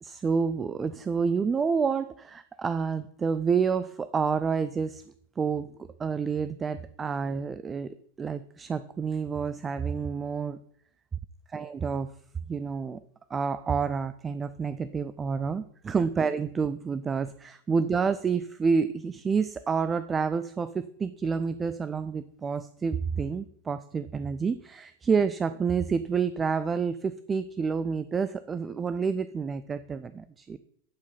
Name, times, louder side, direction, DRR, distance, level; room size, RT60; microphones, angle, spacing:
voice 1, 0.0-5.0 5.4-5.7 6.0-10.6 11.5-12.1 12.5-13.0 13.3-30.6, right 5 dB, 20° right, 14 dB, 0.4 m, -29 dB
11.5 x 4.9 x 5.6 m, 0.65 s
figure-of-eight pair, 90°, 0 cm